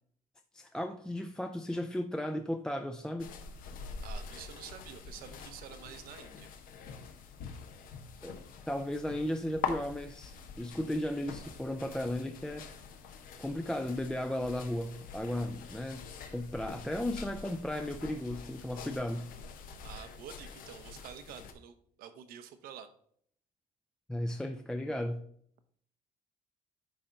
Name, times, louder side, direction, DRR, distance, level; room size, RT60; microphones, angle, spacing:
voice 1, 0.5-3.3 8.2-8.4 8.7-12.7 13.4-16.1 16.3-19.3 24.1-25.2, left 1 dB, 5° left, 0.3 m, -35 dB
sound 1, 3.2-21.5, left 6 dB, 75° left, 1.0 m, -45 dB
voice 2, 4.0-6.5 19.8-22.9, right 9 dB, 85° right, 0.9 m, -48 dB
9.7 x 4.3 x 3.8 m
cardioid pair, 140°, 15 cm